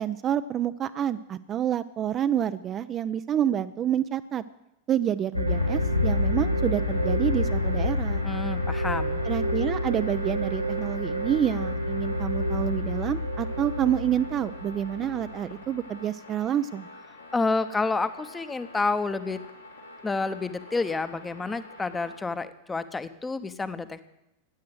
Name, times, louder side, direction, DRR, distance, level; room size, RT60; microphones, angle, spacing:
voice 1, 0.0-4.4 4.9-8.2 9.2-16.9, right 10 dB, 30° right, 12 dB, 0.5 m, -28 dB
sound 1, 5.3-15.6, left 1 dB, 90° right, 1.2 m, -28 dB
sound 2, 5.5-22.2, left 2 dB, 80° left, 2.8 m, -47 dB
voice 2, 8.2-9.2 17.3-19.4 20.0-24.0, left 3 dB, 10° left, 13 dB, 0.9 m, -29 dB
15.0 x 9.6 x 7.7 m, 0.88 s
figure-of-eight pair, 90°, 0 cm